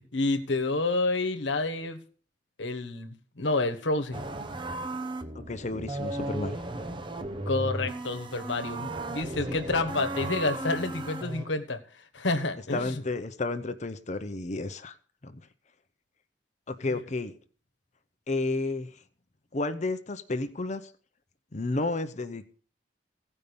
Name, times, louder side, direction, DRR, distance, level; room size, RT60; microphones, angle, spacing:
voice 1, 0.1-2.0 2.6-4.2 7.5-11.8 12.1-13.0 16.8-17.0, left 2 dB, 80° left, 7 dB, 1.2 m, -29 dB
sound 1, 4.1-11.5, right 2 dB, 25° right, 0.8 m, -35 dB
voice 2, 5.3-6.6 9.5-9.6 12.7-15.0 15.2-15.4 16.7-17.3 18.3-18.9 19.5-20.9 21.5-22.4, left 2 dB, 40° left, 10 dB, 0.7 m, -31 dB
16.0 x 5.5 x 6.8 m, 0.44 s
head